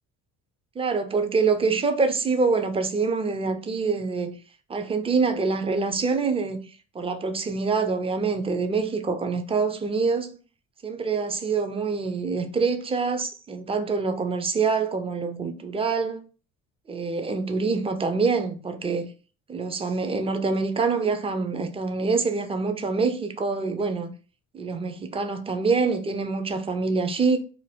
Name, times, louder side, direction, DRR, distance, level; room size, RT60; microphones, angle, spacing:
voice 1, 0.8-4.4 4.7-6.6 6.9-10.3 10.8-16.2 16.9-19.1 19.5-24.1 24.5-27.4, right 4 dB, 15° right, 0.4 m, -25 dB
2.6 x 2.2 x 3.3 m
supercardioid pair, 65°, 38 cm